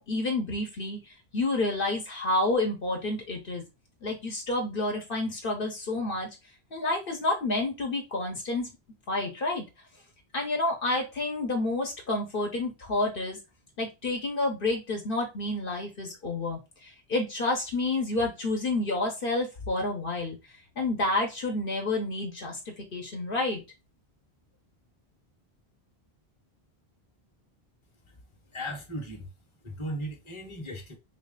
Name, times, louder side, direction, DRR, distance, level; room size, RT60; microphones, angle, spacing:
voice 1, 0.0-3.6 4.0-6.3 6.7-8.7 9.1-9.6 10.3-13.4 13.8-20.4 20.8-23.6, left 2 dB, 60° left, 1.1 m, -29 dB
voice 2, 28.5-29.3 29.6-31.0, equal, 30° left, 1.0 m, -37 dB
3.2 x 3.0 x 3.7 m
omnidirectional pair, 1.0 m